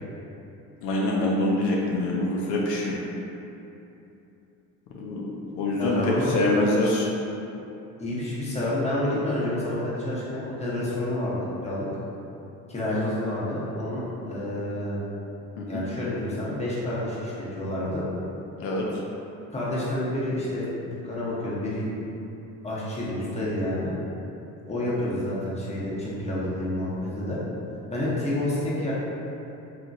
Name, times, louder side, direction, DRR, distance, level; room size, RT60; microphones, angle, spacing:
voice 1, 0.8-3.0 5.0-7.1 15.6-15.8 18.6-18.8, left 2 dB, 70° left, -3 dB, 0.5 m, -25 dB
voice 2, 5.7-6.3 8.0-11.9 12.7-15.0 15.7-18.1 19.5-21.9 22.6-23.9 24.7-27.4 27.9-28.9, left 1 dB, 15° left, -8 dB, 0.9 m, -29 dB
2.9 x 2.4 x 2.6 m, 2.8 s
hypercardioid pair, 60°, 42 cm